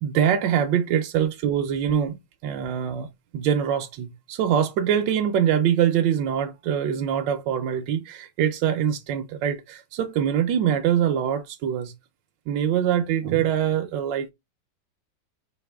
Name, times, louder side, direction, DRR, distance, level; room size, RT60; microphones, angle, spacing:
voice 1, 0.0-3.1 3.3-11.9 12.5-14.3, right 9 dB, 80° right, 1.3 m, -24 dB
4.8 x 2.8 x 3.3 m
omnidirectional pair, 2.0 m